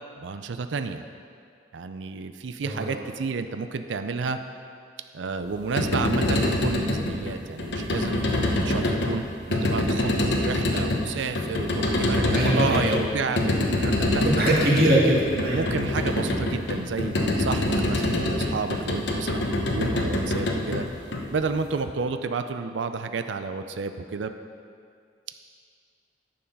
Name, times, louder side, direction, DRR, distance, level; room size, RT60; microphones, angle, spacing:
voice 1, 0.2-1.0 1.7-4.4 5.1-8.2 8.5-9.2 9.5-14.2 15.5-17.1 17.4-20.9 21.3-24.3, right 4 dB, 90° right, 9 dB, 0.5 m, -31 dB
voice 2, 2.6-3.0 12.3-13.2 14.2-15.6, right 1 dB, 55° right, -4 dB, 2.0 m, -22 dB
sound 1, 5.5-21.7, left 1 dB, 70° left, 1.0 m, -26 dB
10.5 x 7.0 x 5.3 m, 2.3 s
head